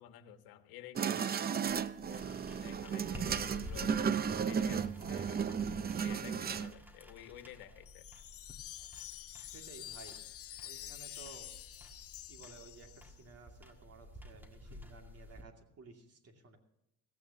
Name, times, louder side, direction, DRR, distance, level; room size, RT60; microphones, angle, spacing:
voice 1, 0.0-1.5 2.1-5.5 6.0-8.1, left 12 dB, 80° left, 8 dB, 1.4 m, -52 dB
sound 1, 1.0-6.7, right 7 dB, 25° right, 0.5 m, -34 dB
sound 2, 1.7-15.4, left 1 dB, 5° right, 1.8 m, -52 dB
Wind chime, 7.8-13.2, left 12 dB, 45° left, 0.5 m, -48 dB
voice 2, 9.4-10.2 10.6-11.5 12.3-12.9 13.2-16.6, right 4 dB, 45° right, 4 dB, 2.5 m, -55 dB
16.5 x 15.5 x 2.9 m, 0.85 s
cardioid pair, 120°, 36 cm